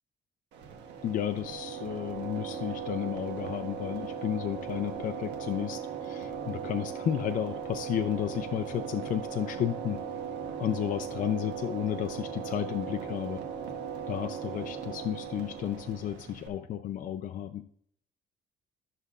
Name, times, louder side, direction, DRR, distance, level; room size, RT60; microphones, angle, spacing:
sound 1, 0.5-16.5, right 7 dB, 90° right, 1.3 m, -38 dB
voice 1, 1.0-10.0 10.6-13.4 14.1-17.6, left 10 dB, 50° left, 7 dB, 0.5 m, -32 dB
13.0 x 6.6 x 2.4 m, 0.63 s
cardioid pair, 135°, 18 cm